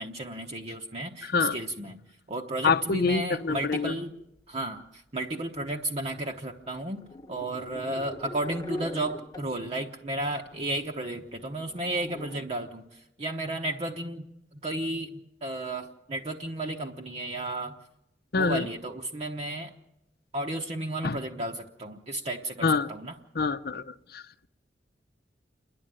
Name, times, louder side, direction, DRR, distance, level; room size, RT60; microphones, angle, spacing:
voice 1, 0.0-2.0 2.3-4.1 4.5-7.0 7.3-17.8 18.4-19.7 20.3-23.1, right 1 dB, 35° right, 1.0 m, -33 dB
voice 2, 1.2-1.6 2.6-3.9 18.3-18.7 21.0-21.2 22.6-22.9 23.3-24.2, left 4 dB, 60° left, 0.7 m, -26 dB
sound 1, 3.4-4.0 4.6-4.7 5.6-5.7 6.0-6.1 7.0-9.6 10.1-10.2 10.5-10.8 11.1-12.4, left 2 dB, 20° left, 1.2 m, -42 dB
28.5 x 11.0 x 9.0 m
head